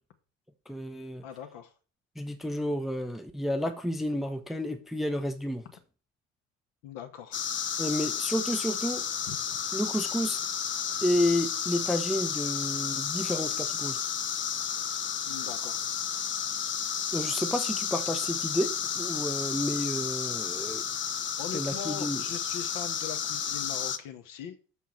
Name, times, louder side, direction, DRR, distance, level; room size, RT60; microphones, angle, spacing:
voice 1, 0.7-1.2 2.2-5.6 7.8-9.0 9.7-10.4 11.0-14.0 17.1-20.8 21.5-22.2, left 1 dB, ahead, 0.8 m, -31 dB
voice 2, 1.2-1.7 6.8-7.4 9.3-9.4 15.3-15.8 21.4-24.6, left 9 dB, 55° left, 1.7 m, -40 dB
sound 1, 7.3-24.0, left 8 dB, 30° left, 0.9 m, -32 dB
6.5 x 5.6 x 7.3 m
figure-of-eight pair, 65°, 40 cm